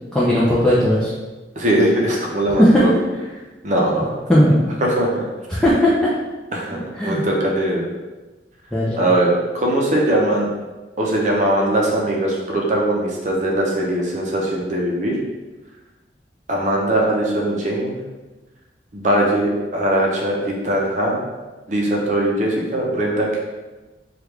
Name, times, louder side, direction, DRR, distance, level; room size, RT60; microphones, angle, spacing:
voice 1, 0.1-1.1 2.5-2.9 4.3-4.6 5.5-6.1 6.9-7.2 8.7-9.0, equal, 5° left, -9 dB, 0.4 m, -16 dB
voice 2, 1.6-2.6 3.6-4.1 4.5-4.6 4.9-5.2 6.5-7.8 8.9-10.5 11.0-15.2 16.5-18.0 18.9-21.2 21.7-23.4, right 1 dB, 40° right, -2 dB, 0.6 m, -20 dB
3.1 x 2.4 x 3.3 m, 1.2 s
head